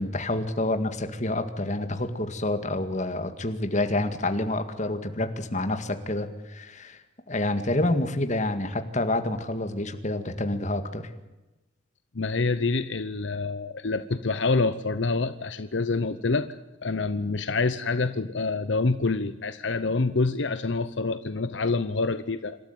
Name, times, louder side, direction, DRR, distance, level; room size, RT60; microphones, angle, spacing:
voice 1, 0.0-7.0 7.3-11.1, left 2 dB, 40° left, 8 dB, 1.9 m, -28 dB
voice 2, 12.1-22.6, left 3 dB, 70° left, 12 dB, 0.8 m, -27 dB
27.0 x 13.0 x 9.3 m, 1.0 s
head